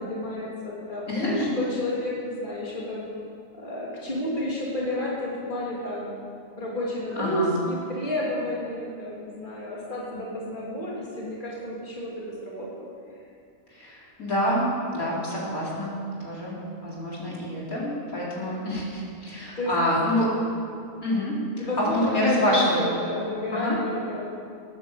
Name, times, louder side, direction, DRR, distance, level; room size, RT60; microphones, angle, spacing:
voice 1, 0.0-3.1 3.6-6.2 6.6-12.9 19.6-19.7 20.1-20.4 21.6-24.2, left 1 dB, 35° left, -5 dB, 3.2 m, -31 dB
voice 2, 1.1-1.5 7.2-7.5 13.7-20.3 21.0-22.8 23.5-23.8, left 1 dB, 80° left, -6 dB, 4.6 m, -27 dB
18.5 x 10.5 x 7.6 m, 2.4 s
omnidirectional pair, 1.5 m